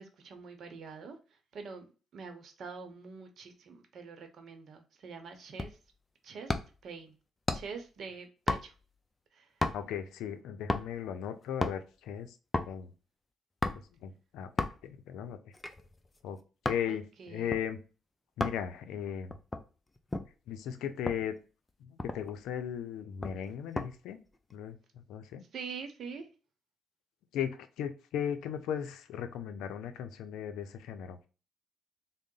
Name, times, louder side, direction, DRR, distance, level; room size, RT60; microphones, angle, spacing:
voice 1, 0.0-5.8 6.2-6.6 6.8-7.1 7.5-8.7 9.3-9.5 16.9-17.6 25.5-26.3, right 5 dB, 65° right, 6 dB, 0.8 m, -45 dB
sound 1, 5.6-5.9 6.5-6.9 7.5-7.8 8.5-8.9 9.6-10.0 10.7-11.1 11.4-11.8 12.5-12.8 13.6-14.0 14.6-14.9 15.5-16.9 17.5-17.6 18.4-18.7 19.3-20.3 21.1-21.3 21.7-21.8 22.0-22.4 23.2-23.9 24.2-24.6, left 2 dB, 20° left, 0.5 m, -34 dB
voice 2, 9.7-12.3 12.7-12.9 14.0-15.4 16.2-16.4 16.7-17.0 17.3-17.8 18.4-19.3 20.5-21.3 21.8-24.2 24.5-24.8 25.1-25.4 27.3-31.3, left 9 dB, 90° left, 9 dB, 0.5 m, -37 dB
3.7 x 2.1 x 3.7 m, 0.34 s
cardioid pair, 90°, 0 cm